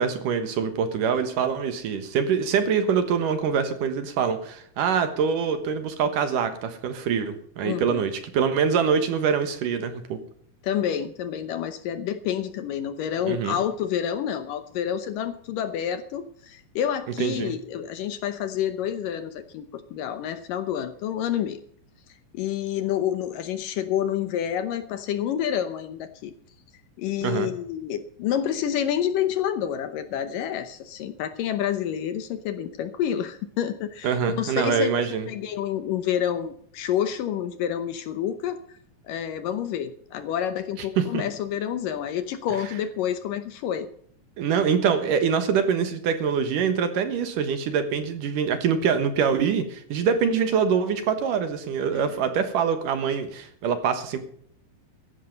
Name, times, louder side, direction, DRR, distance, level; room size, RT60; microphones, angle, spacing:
voice 1, 0.0-10.2 13.3-13.6 17.2-17.5 27.2-27.5 34.0-35.3 41.0-41.2 44.4-54.2, right 6 dB, 65° right, 9 dB, 2.7 m, -24 dB
voice 2, 7.6-8.1 10.6-21.6 22.3-26.3 27.0-38.8 39.0-43.9 51.9-52.1, left 9 dB, 70° left, 11 dB, 2.3 m, -28 dB
15.5 x 11.5 x 5.3 m, 0.62 s
omnidirectional pair, 4.5 m